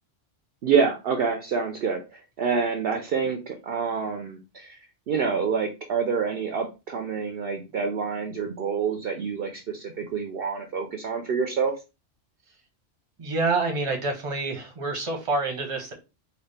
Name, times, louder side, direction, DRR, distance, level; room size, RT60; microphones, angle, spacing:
voice 1, 0.6-4.8 5.1-11.7, right 5 dB, 60° right, 0.7 m, -27 dB
voice 2, 13.2-15.9, right 3 dB, 30° right, 0.8 m, -27 dB
3.9 x 2.4 x 3.3 m
omnidirectional pair, 1.2 m